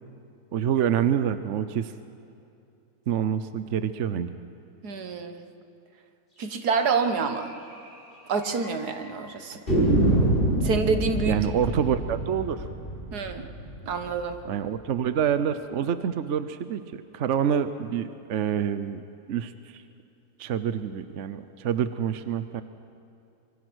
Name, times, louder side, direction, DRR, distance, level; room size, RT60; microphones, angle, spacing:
voice 1, 0.5-1.9 3.1-4.3 11.3-12.7 14.4-19.0 19.3-19.8 20.4-22.6, right 8 dB, 55° right, 11 dB, 0.9 m, -27 dB
voice 2, 4.8-5.4 6.4-7.5 8.3-9.6 10.6-11.4 13.1-13.5 13.8-14.4, right 5 dB, 70° right, 7 dB, 1.9 m, -27 dB
sound 1, 7.0-7.1 7.3-7.4 7.7-7.8 8.4-9.0 9.7-14.5, right 1 dB, 30° left, 6.3 m, -26 dB
25.5 x 23.5 x 6.3 m, 2.6 s
omnidirectional pair, 1.7 m